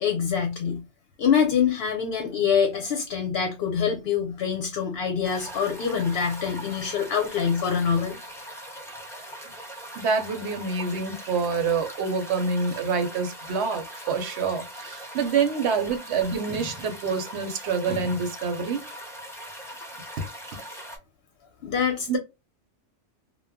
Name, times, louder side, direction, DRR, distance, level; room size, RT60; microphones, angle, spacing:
voice 1, 0.0-0.8 1.2-8.2 21.6-22.2, left 7 dB, 65° left, 0.7 m, -25 dB
sound 1, 5.2-21.0, equal, 5° left, 0.4 m, -41 dB
voice 2, 10.0-18.8 22.1-22.2, right 5 dB, 70° right, 0.9 m, -27 dB
2.2 x 2.0 x 3.4 m
omnidirectional pair, 1.2 m